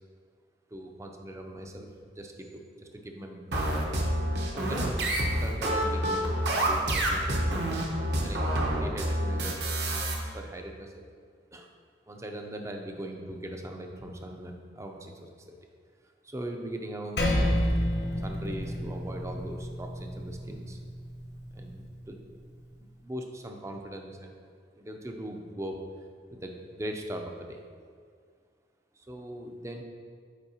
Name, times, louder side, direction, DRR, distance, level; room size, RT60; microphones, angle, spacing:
voice 1, 0.7-3.9 4.5-5.0 5.3-9.6 10.3-11.0 11.5-11.7 12.1-15.6 16.2-17.3 18.1-20.8 21.5-22.2 23.0-24.5 24.7-25.8 26.3-27.6 29.0-29.8, right 1 dB, 15° right, 3 dB, 0.4 m, -40 dB
sound 1, 3.5-10.1, right 1 dB, 60° right, 0.9 m, -28 dB
Percussion, 17.2-21.9, equal, 65° left, 1.0 m, -30 dB
8.0 x 4.5 x 2.8 m, 2.1 s
head